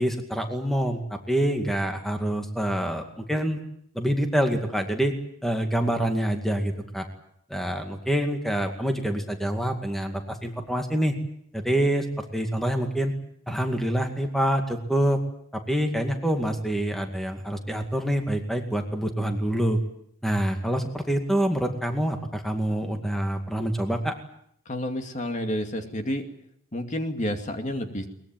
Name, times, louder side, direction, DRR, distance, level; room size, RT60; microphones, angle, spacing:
voice 1, 0.0-3.6 3.9-5.1 5.4-7.1 7.5-11.1 11.5-12.1 12.3-13.1 13.5-15.2 15.5-19.8 20.2-24.2, right 1 dB, ahead, 4 dB, 2.2 m, -26 dB
voice 2, 24.7-26.3 26.7-28.1, left 1 dB, 40° left, 5 dB, 2.4 m, -30 dB
22.5 x 21.0 x 9.2 m, 0.70 s
head